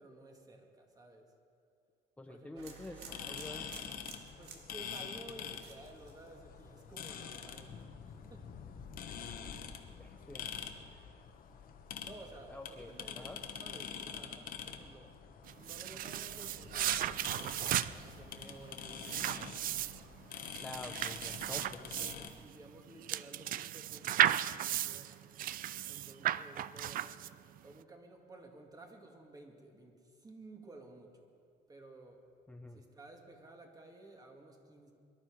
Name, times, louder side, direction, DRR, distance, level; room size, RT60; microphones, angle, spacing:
voice 1, 0.0-1.3 2.3-2.9 4.4-8.5 12.0-15.2 15.5-19.6 21.7-24.3 24.6-25.2 25.8-27.1 27.6-31.3 31.7-32.2 32.7-34.9, right 2 dB, 20° right, 3 dB, 2.2 m, -54 dB
voice 2, 2.2-3.9 10.0-10.5 12.5-13.4 20.6-22.3 32.5-32.8, left 2 dB, 10° left, 4 dB, 0.7 m, -48 dB
sound 1, 2.6-6.6 6.9-7.4, right 6 dB, 80° right, 1.9 m, -53 dB
sound 2, 3.0-22.3, left 7 dB, 60° left, 1.3 m, -46 dB
sound 3, 15.5-27.6, right 12 dB, 55° right, 0.4 m, -35 dB
23.5 x 11.5 x 4.9 m, 2.3 s
cardioid pair, 110°, 17 cm